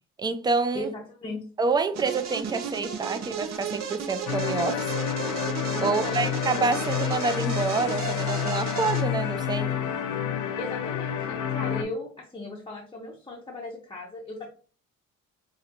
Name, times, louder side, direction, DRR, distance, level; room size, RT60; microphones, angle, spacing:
voice 1, 0.2-0.9 1.6-4.9 5.8-9.8, right 4 dB, 15° right, 0.4 m, -27 dB
voice 2, 0.7-1.4 5.7-6.3 10.6-14.5, left 2 dB, 15° left, 0.8 m, -37 dB
sound 1, 1.9-9.0, right 6 dB, 65° right, 0.7 m, -34 dB
sound 2, 4.3-11.8, left 9 dB, 75° left, 0.6 m, -29 dB
5.0 x 2.6 x 2.8 m
cardioid pair, 90°, 30 cm